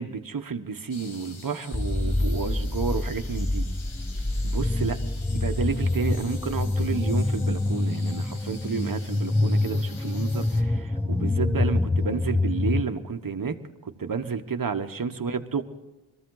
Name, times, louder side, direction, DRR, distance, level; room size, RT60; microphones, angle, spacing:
voice 1, 0.0-3.7 4.4-5.0 5.3-13.6 13.8-15.6, right 5 dB, 45° right, 6 dB, 1.1 m, -31 dB
sound 1, 0.9-10.6, left 4 dB, 80° left, 1.6 m, -47 dB
sound 2, 1.7-12.8, left 2 dB, 5° left, 0.4 m, -26 dB
22.5 x 14.5 x 3.9 m, 1.1 s
wide cardioid pair, 65°, 47 cm